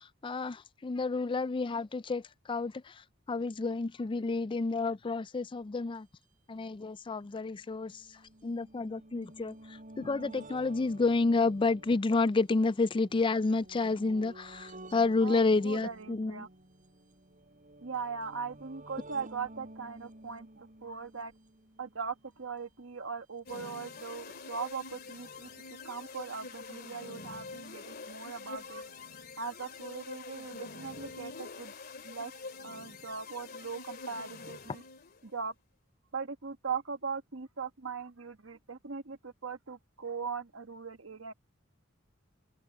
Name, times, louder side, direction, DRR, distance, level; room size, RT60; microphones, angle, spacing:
voice 1, 0.0-6.1 6.5-16.5, left 3 dB, 25° left, 0.4 m, -30 dB
sound 1, 5.9-6.0 6.2-6.3 7.2-22.4 23.4-23.5 23.6-23.7, right 1 dB, 40° right, 5.7 m, -52 dB
voice 2, 15.2-16.5 17.8-21.3 21.8-25.5 25.8-28.8 29.4-31.7 32.0-32.3 32.6-34.8 35.2-35.5 36.1-41.3, right 5 dB, 70° right, 1.4 m, -40 dB
sound 2, 23.5-35.2, left 4 dB, 50° left, 2.5 m, -46 dB
head